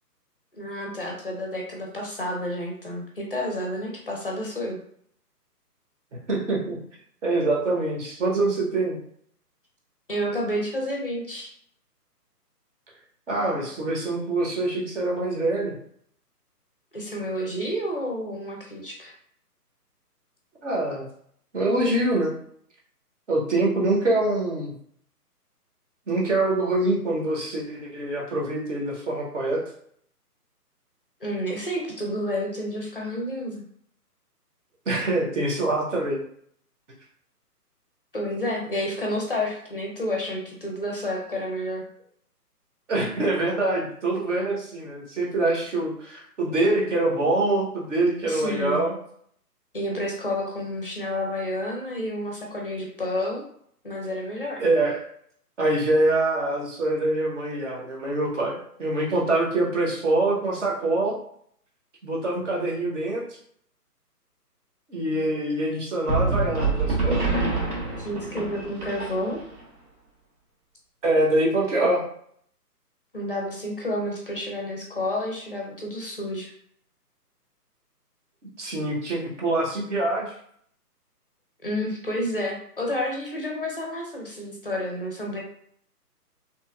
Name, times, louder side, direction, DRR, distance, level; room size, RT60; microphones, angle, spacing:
voice 1, 0.5-4.8 10.1-11.5 16.9-19.1 31.2-33.6 38.1-41.8 48.3-48.8 49.7-53.4 53.8-54.6 68.0-69.4 73.1-76.5 81.6-85.4, left 1 dB, 35° left, -1 dB, 0.4 m, -30 dB
voice 2, 6.3-6.8 7.2-9.0 13.3-15.8 20.6-21.0 21.5-22.3 23.3-24.7 26.1-29.6 34.9-36.2 42.9-49.0 54.6-55.0 55.6-61.1 62.0-63.2 64.9-67.2 71.0-72.0 78.6-80.3, right 2 dB, 50° right, -2 dB, 0.9 m, -24 dB
sound 1, 66.1-69.6, right 3 dB, 70° right, 1.2 m, -26 dB
2.9 x 2.4 x 2.3 m, 0.65 s
figure-of-eight pair, 150°, 48 cm